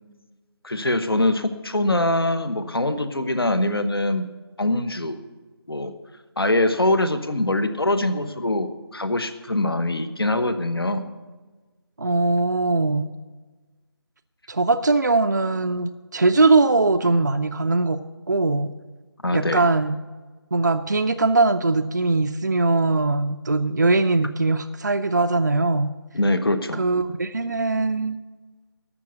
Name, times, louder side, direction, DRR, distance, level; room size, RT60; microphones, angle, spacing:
voice 1, 0.6-4.3 4.6-5.2 5.7-5.9 6.4-11.1 19.2-19.6 26.1-26.8, left 1 dB, 65° left, 10 dB, 1.1 m, -23 dB
voice 2, 12.0-13.1 14.5-18.0 18.3-18.7 19.3-20.0 20.5-25.9 26.8-28.2, right 3 dB, 45° right, 7 dB, 0.5 m, -21 dB
12.0 x 7.0 x 8.9 m, 1.3 s
figure-of-eight pair, 165°, 14 cm